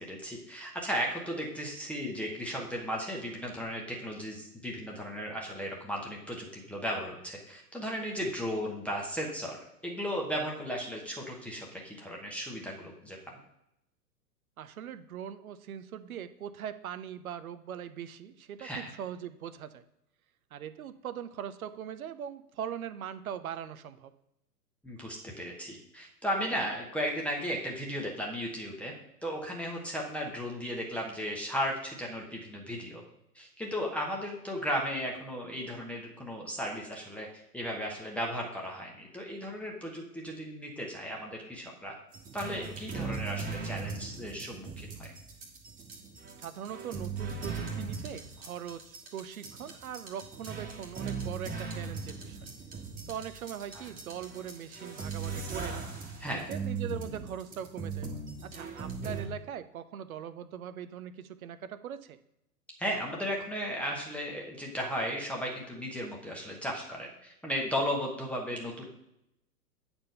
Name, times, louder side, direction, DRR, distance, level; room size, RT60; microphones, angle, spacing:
voice 1, 0.1-9.6 9.8-13.2 18.6-18.9 24.8-28.9 29.2-33.0 33.3-37.3 37.5-41.9 42.3-45.1 53.7-53.9 56.2-56.5 62.8-68.9, equal, 5° left, -2 dB, 1.1 m, -35 dB
voice 2, 14.6-19.8 20.5-24.1 46.4-52.4 53.1-55.9 56.5-58.1 58.4-62.2, right 9 dB, 60° right, 12 dB, 0.8 m, -41 dB
sound 1, 42.1-59.3, right 4 dB, 15° right, 1.6 m, -39 dB
8.8 x 4.4 x 5.5 m, 0.82 s
figure-of-eight pair, 115°, 48 cm